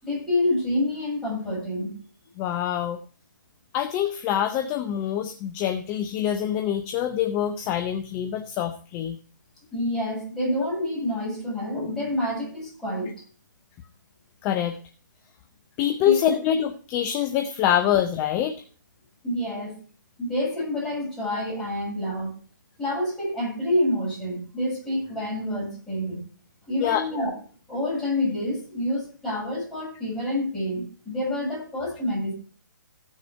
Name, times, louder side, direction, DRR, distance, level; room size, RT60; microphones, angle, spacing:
voice 1, 0.0-1.9 9.7-13.1 16.0-16.1 19.2-19.8 20.2-22.4 22.8-26.2 26.7-27.3 27.7-32.3, left 1 dB, 5° left, -7 dB, 7.3 m, -27 dB
voice 2, 2.4-3.0 3.7-9.2 14.4-14.8 15.8-18.6 26.8-27.0, left 10 dB, 20° left, 9 dB, 0.5 m, -25 dB
15.0 x 6.4 x 4.7 m, 0.41 s
figure-of-eight pair, 135°, 11 cm